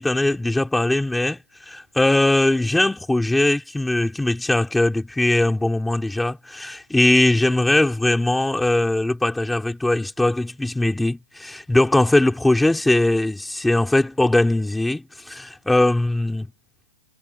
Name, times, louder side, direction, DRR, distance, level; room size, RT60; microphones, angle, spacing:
voice 1, 0.0-1.4 1.7-16.5, left 2 dB, ahead, 3.1 m, -20 dB
hypercardioid pair, 175°, 0 cm